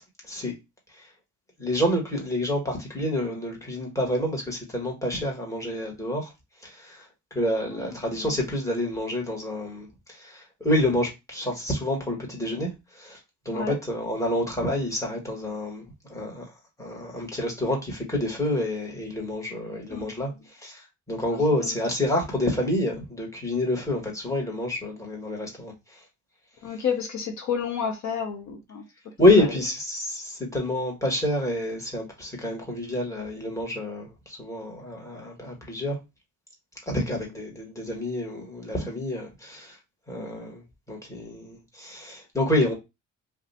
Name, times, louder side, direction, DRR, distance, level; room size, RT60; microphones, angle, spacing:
voice 1, 1.6-6.3 6.6-13.2 13.4-15.8 16.1-16.5 16.8-26.0 26.7-26.8 29.2-36.0 36.9-39.8 40.1-40.6 40.9-42.7, left 1 dB, 10° left, 1.4 m, -28 dB
voice 2, 19.9-20.3 21.3-21.7 26.6-28.8 29.4-29.5 40.2-40.5, left 6 dB, 70° left, 0.9 m, -31 dB
2.5 x 2.3 x 4.0 m
cardioid pair, 90°, 30 cm